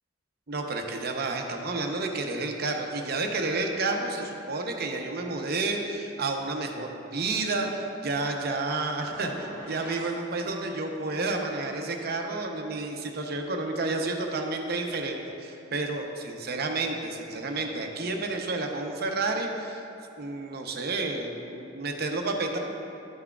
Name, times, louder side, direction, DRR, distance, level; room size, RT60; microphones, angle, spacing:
voice 1, 0.5-19.8 20.2-22.6, right 3 dB, 55° right, 3 dB, 0.7 m, -30 dB
sound 1, 9.0-10.2, left 1 dB, 65° left, 1.2 m, -43 dB
12.0 x 5.9 x 2.3 m, 2.8 s
head